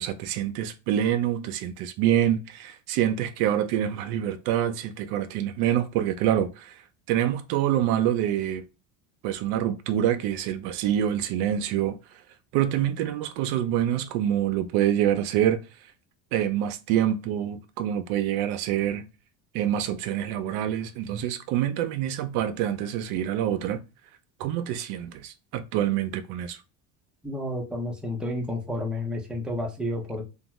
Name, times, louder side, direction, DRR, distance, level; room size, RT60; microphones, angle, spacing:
voice 1, 0.0-6.8 7.1-8.6 9.2-12.0 12.5-15.6 16.3-19.0 19.5-23.8 24.4-26.6, right 11 dB, 75° right, 0.6 m, -26 dB
voice 2, 27.2-30.2, left 1 dB, ahead, 0.7 m, -31 dB
2.6 x 2.3 x 3.0 m
cardioid pair, 120°, 39 cm